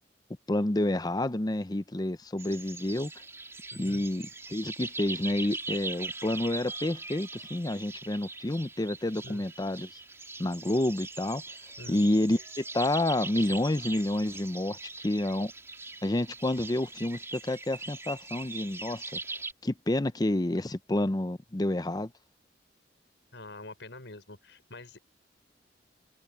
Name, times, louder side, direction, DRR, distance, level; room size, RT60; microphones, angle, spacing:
voice 1, 0.5-3.1 3.8-9.9 10.4-11.4 11.9-14.8 15.0-15.5 16.0-19.2 19.6-22.1, left 1 dB, 20° left, 0.6 m, -29 dB
sound 1, 2.4-19.5, right 3 dB, 15° right, 3.5 m, -41 dB
voice 2, 3.7-4.0 9.2-9.4 11.8-12.0 23.3-25.0, left 2 dB, 80° left, 5.1 m, -45 dB
head